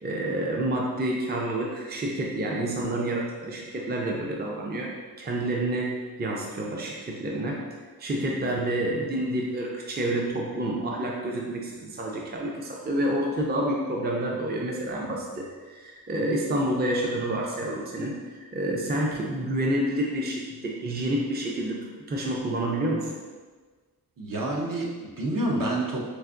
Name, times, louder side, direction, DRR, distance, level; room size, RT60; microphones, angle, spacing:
voice 1, 0.0-7.6 8.0-18.2 18.5-21.8 22.1-23.1, right 1 dB, 25° right, -2 dB, 0.5 m, -28 dB
voice 2, 24.2-26.0, right 1 dB, 60° right, -2 dB, 0.7 m, -28 dB
4.7 x 2.5 x 2.5 m, 1.4 s
wide cardioid pair, 60°, 38 cm